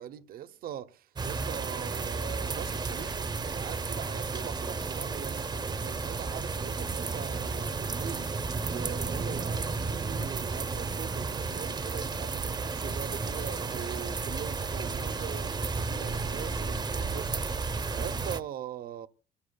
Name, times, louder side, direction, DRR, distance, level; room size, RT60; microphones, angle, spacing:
voice 1, 0.0-17.3 17.6-19.1, right 10 dB, 60° right, 0.9 m, -42 dB
sound 1, 1.2-18.4, right 4 dB, 25° right, 0.8 m, -33 dB
27.5 x 14.5 x 2.3 m
cardioid pair, 110°, 17 cm